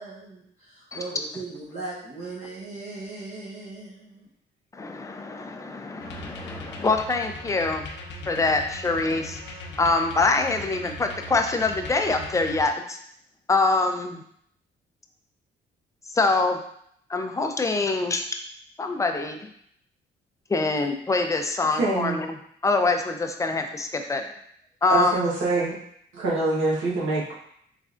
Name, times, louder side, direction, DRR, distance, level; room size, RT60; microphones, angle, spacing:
voice 1, 0.0-4.3, right 3 dB, 40° right, -8 dB, 1.0 m, -38 dB
voice 2, 4.7-7.8 8.3-9.4 9.8-13.0 13.5-14.2 16.1-16.6 17.1-18.3 18.8-19.5 20.5-22.4 22.6-24.2 24.8-25.3, left 3 dB, 15° left, 5 dB, 0.4 m, -24 dB
sound 1, 6.0-12.6, left 1 dB, 65° left, 0.6 m, -39 dB
voice 3, 21.8-22.2 24.9-25.7 26.1-27.3, right 2 dB, 80° right, -5 dB, 1.2 m, -24 dB
3.6 x 3.2 x 2.5 m, 0.69 s
cardioid pair, 90°, 20 cm